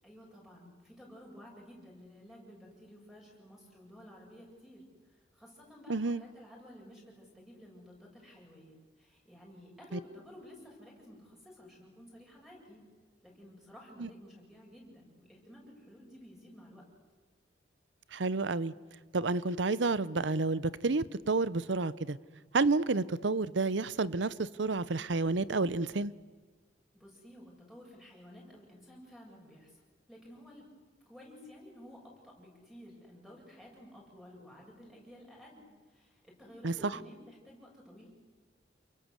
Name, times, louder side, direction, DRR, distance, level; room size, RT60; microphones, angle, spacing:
voice 1, 0.0-12.8 13.2-16.8 26.9-29.8 30.1-30.7 31.1-38.1, equal, ahead, 7.8 m, -53 dB
voice 2, 5.9-6.2 9.9-10.0 14.0-14.1 18.1-18.7 19.1-22.2 22.5-26.1 36.6-36.9, right 3 dB, 80° right, 0.8 m, -30 dB
29.0 x 23.5 x 8.2 m
head